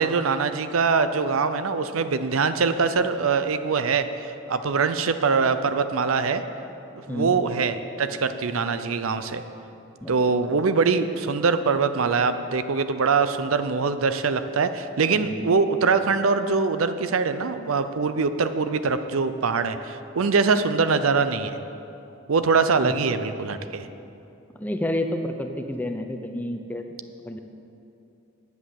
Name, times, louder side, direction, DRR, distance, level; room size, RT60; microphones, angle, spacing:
voice 1, 0.0-6.4 7.1-9.4 10.1-21.6 22.3-23.9, right 4 dB, 90° right, 11 dB, 0.6 m, -23 dB
voice 2, 15.2-15.5 22.8-22.9 24.6-26.9 27.2-27.4, left 1 dB, 10° left, 5 dB, 0.6 m, -29 dB
10.0 x 8.2 x 7.2 m, 2.8 s
head